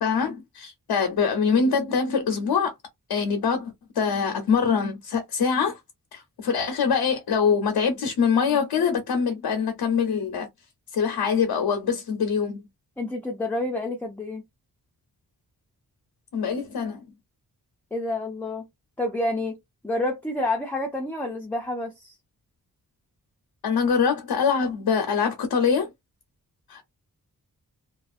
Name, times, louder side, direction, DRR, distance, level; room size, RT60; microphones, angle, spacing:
voice 1, 0.0-2.7 3.1-5.8 6.1-10.5 10.9-12.6 16.3-17.0 23.6-25.9 26.7-26.8, left 6 dB, 85° left, 0.7 m, -24 dB
voice 2, 13.0-14.4 17.9-18.6 19.0-19.6 19.8-22.1, left 2 dB, 5° left, 0.4 m, -28 dB
2.4 x 2.3 x 2.4 m
wide cardioid pair, 155°, 36 cm